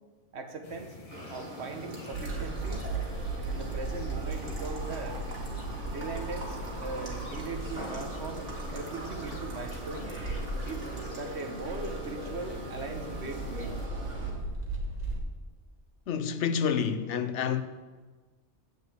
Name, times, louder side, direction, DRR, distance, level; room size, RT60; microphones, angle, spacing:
voice 1, 0.3-0.9 1.3-2.9 3.4-5.2 5.9-10.2 10.6-13.8, right 3 dB, 65° right, 1.3 m, -40 dB
sound 1, 0.6-13.9, left 3 dB, 30° left, 1.2 m, -47 dB
sound 2, 1.1-14.3, right 2 dB, 85° right, 2.3 m, -42 dB
sound 3, 2.1-15.2, right 2 dB, 35° right, 1.6 m, -37 dB
voice 2, 16.1-17.6, left 7 dB, 75° left, 1.0 m, -28 dB
8.1 x 6.9 x 8.0 m
omnidirectional pair, 1.2 m